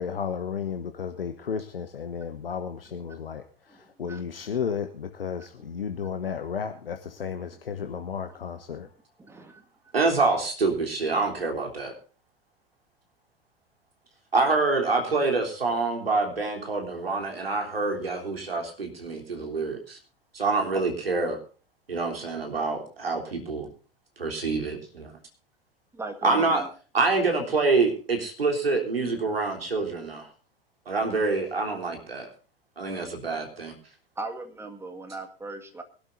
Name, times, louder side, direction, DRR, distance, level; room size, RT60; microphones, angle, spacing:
voice 1, 0.0-3.4 4.0-8.9, left 7 dB, 75° left, 8 dB, 1.1 m, -33 dB
voice 2, 3.7-4.5 5.4-5.5 8.0-8.4 9.2-9.6 20.7-20.8 25.9-26.7 34.2-35.8, right 2 dB, 10° right, 7 dB, 1.8 m, -39 dB
voice 3, 9.9-11.9 14.3-20.0 20.3-21.4 21.9-23.7 24.2-25.1 26.2-26.6 26.9-30.3 30.8-32.3 32.8-33.7, right 3 dB, 75° right, 3 dB, 3.5 m, -26 dB
22.5 x 12.0 x 2.6 m, 0.37 s
figure-of-eight pair, 90°, 30 cm